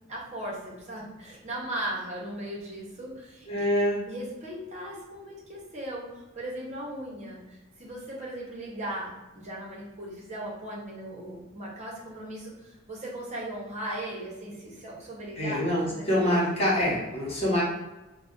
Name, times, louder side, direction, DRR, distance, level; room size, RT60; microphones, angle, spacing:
voice 1, 0.1-3.6 4.1-16.1, right 1 dB, 35° right, -4 dB, 0.6 m, -38 dB
voice 2, 3.5-4.0 15.4-17.6, left 1 dB, 30° left, -6 dB, 0.9 m, -25 dB
2.3 x 2.0 x 3.6 m, 1.1 s
head